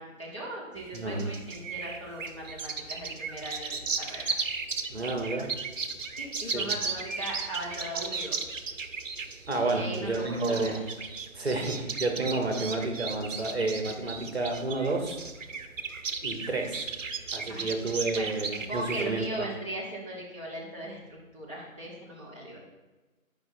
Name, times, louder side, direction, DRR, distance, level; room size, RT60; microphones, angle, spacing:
voice 1, 0.0-4.4 6.2-8.4 9.6-10.7 17.5-18.3 18.7-22.6, right 1 dB, 20° left, -7 dB, 1.0 m, -39 dB
sound 1, 0.8-19.3, right 4 dB, 65° right, 0.7 m, -36 dB
voice 2, 0.9-1.3 4.9-5.5 6.5-6.6 9.5-10.8 11.3-15.2 16.2-16.9 17.3-19.5, right 2 dB, 50° right, 3 dB, 1.0 m, -30 dB
9.5 x 5.1 x 2.6 m, 1.2 s
figure-of-eight pair, 175°, 41 cm